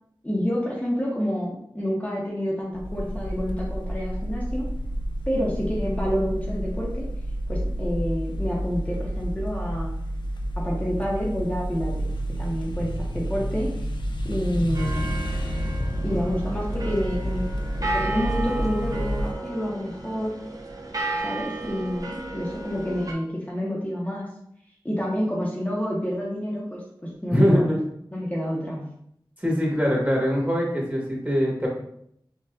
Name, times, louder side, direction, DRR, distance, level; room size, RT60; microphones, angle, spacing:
voice 1, 0.2-4.7 5.3-7.1 7.5-9.9 10.6-12.1 12.4-13.7 14.2-15.0 16.0-17.5 17.8-20.4 21.2-24.3 24.8-27.8 28.1-28.9, equal, 15° left, -5 dB, 0.9 m, -28 dB
sound 1, 2.7-19.3, equal, 65° left, 0.4 m, -29 dB
sound 2, 14.7-23.1, right 2 dB, 45° right, 0.6 m, -33 dB
voice 2, 27.3-27.8 29.4-31.7, equal, 20° right, -3 dB, 1.4 m, -22 dB
5.5 x 2.4 x 2.4 m, 0.71 s
wide cardioid pair, 55°, 8 cm